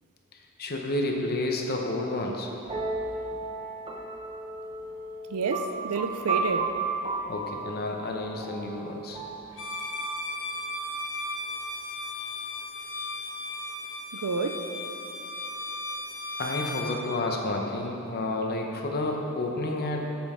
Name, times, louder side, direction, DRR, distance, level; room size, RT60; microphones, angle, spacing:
voice 1, 0.6-2.5 7.3-9.2 16.4-20.1, left 2 dB, 45° left, 0.8 m, -30 dB
sound 1, 2.7-10.2, right 3 dB, 25° right, 1.0 m, -34 dB
voice 2, 5.3-6.8 14.1-14.7, right 4 dB, 75° right, 0.5 m, -29 dB
Bowed string instrument, 9.5-17.0, left 2 dB, 60° left, 1.1 m, -36 dB
11.5 x 7.3 x 3.7 m
head